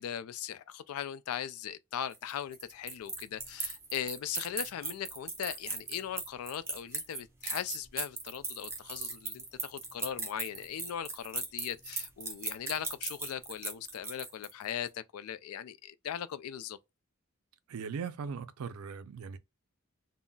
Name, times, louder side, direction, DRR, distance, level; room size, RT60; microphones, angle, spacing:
voice 1, 0.0-16.8, left 9 dB, 90° left, 0.3 m, -39 dB
sound 1, 2.1-14.7, right 3 dB, 10° right, 0.4 m, -38 dB
voice 2, 17.7-19.4, right 6 dB, 85° right, 0.4 m, -39 dB
2.2 x 2.0 x 3.7 m
head